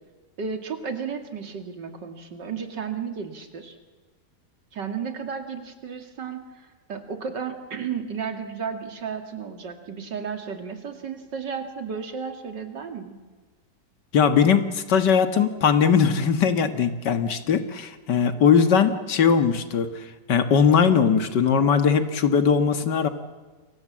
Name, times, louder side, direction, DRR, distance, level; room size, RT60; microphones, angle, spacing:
voice 1, 0.4-3.8 4.7-13.2, right 6 dB, 85° right, 6 dB, 3.0 m, -33 dB
voice 2, 14.1-19.9 20.3-23.1, left 6 dB, 75° left, 9 dB, 2.1 m, -20 dB
29.0 x 23.5 x 7.5 m, 1.3 s
omnidirectional pair, 1.9 m